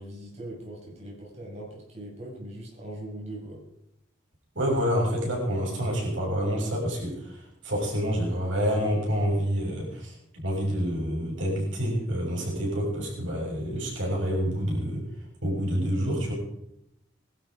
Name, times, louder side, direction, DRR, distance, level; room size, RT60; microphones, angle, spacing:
voice 1, 0.0-3.6, right 1 dB, 35° right, -3 dB, 6.6 m, -40 dB
voice 2, 4.5-10.1 10.4-15.0 15.4-16.3, equal, 85° right, -2 dB, 7.0 m, -28 dB
22.5 x 12.0 x 5.0 m, 0.83 s
head